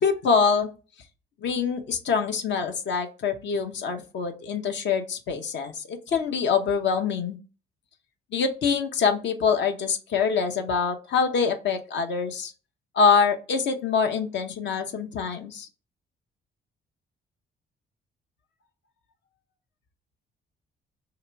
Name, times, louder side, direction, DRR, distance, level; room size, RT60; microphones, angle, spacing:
voice 1, 0.0-0.7 1.4-7.4 8.3-12.5 12.9-15.7, left 5 dB, 65° left, 5 dB, 0.8 m, -25 dB
2.9 x 2.9 x 4.4 m, 0.35 s
cardioid pair, 90°, 20 cm